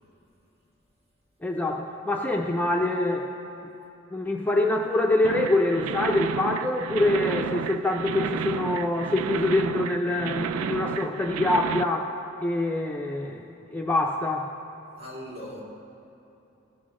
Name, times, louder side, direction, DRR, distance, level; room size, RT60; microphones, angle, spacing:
voice 1, 1.4-3.3 4.1-12.1 12.4-13.4 13.7-14.5, left 2 dB, 10° left, 0 dB, 0.5 m, -25 dB
sound 1, 5.2-11.8, right 7 dB, 90° right, 0.3 m, -31 dB
voice 2, 15.0-15.6, equal, 50° right, -4 dB, 2.0 m, -39 dB
16.5 x 6.1 x 3.7 m, 2.9 s
head